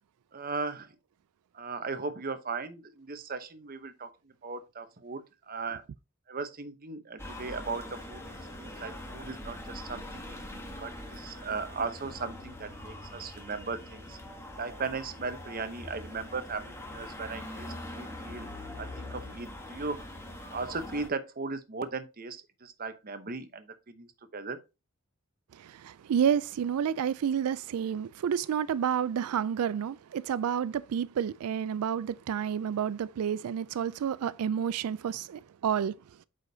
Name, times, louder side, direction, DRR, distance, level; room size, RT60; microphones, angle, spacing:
voice 1, 0.3-1.0 1.5-5.8 6.3-8.2 8.6-14.2 14.6-18.5 18.8-20.1 20.5-24.6, right 4 dB, 40° right, 0.8 m, -37 dB
sound 1, 7.2-21.1, left 1 dB, 10° left, 1.2 m, -43 dB
voice 2, 25.8-35.9, right 8 dB, 85° right, 0.3 m, -30 dB
8.2 x 5.1 x 2.7 m
head